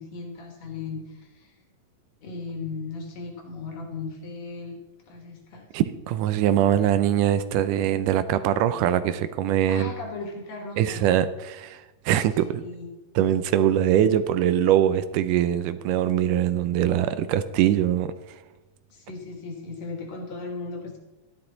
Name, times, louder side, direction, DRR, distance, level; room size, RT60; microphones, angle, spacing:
voice 1, 0.0-1.6 2.2-4.8 5.1-5.7 9.7-11.1 12.6-13.0 18.9-21.0, left 4 dB, 55° left, 3 dB, 2.4 m, -37 dB
voice 2, 5.7-9.9 10.8-12.6 13.2-18.1, right 11 dB, 80° right, 12 dB, 2.1 m, -22 dB
13.0 x 11.0 x 3.9 m, 1.0 s
omnidirectional pair, 3.8 m